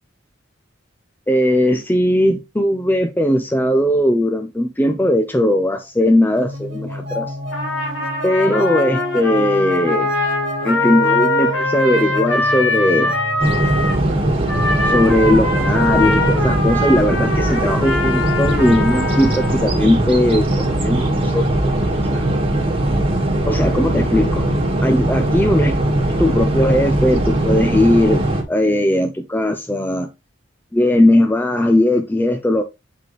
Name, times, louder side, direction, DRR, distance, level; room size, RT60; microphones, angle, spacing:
voice 1, 1.3-7.3 8.2-10.1 10.6-13.1 14.9-21.8 22.1-22.2 23.5-24.5 24.8-25.8 26.2-30.1 30.7-32.6, left 1 dB, 10° left, 0.5 m, -18 dB
sound 1, 6.3-13.9, equal, 60° right, 1.7 m, -29 dB
Trumpet, 7.5-14.0 14.5-19.8, left 2 dB, 80° left, 2.3 m, -22 dB
sound 2, 13.4-28.4, right 1 dB, 30° right, 1.6 m, -19 dB
8.0 x 4.1 x 3.1 m
head